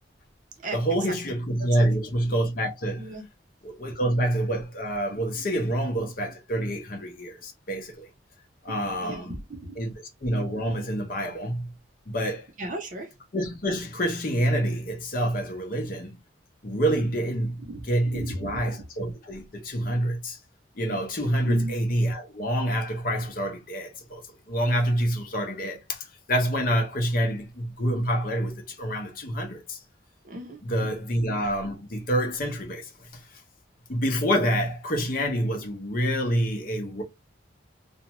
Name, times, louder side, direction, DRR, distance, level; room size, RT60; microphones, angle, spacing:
voice 1, 0.7-3.1 3.6-8.1 8.6-9.4 9.8-9.9 10.2-11.7 12.1-12.5 13.3-16.2 16.6-17.6 17.9-20.4 20.8-29.8 30.6-33.2 33.9-37.0, equal, 45° left, 0.7 m, -27 dB
voice 2, 8.7-9.8 12.6-13.1 17.6-18.9 21.4-21.7 30.2-30.9, right 1 dB, 40° right, 0.6 m, -37 dB
2.5 x 2.2 x 2.9 m
head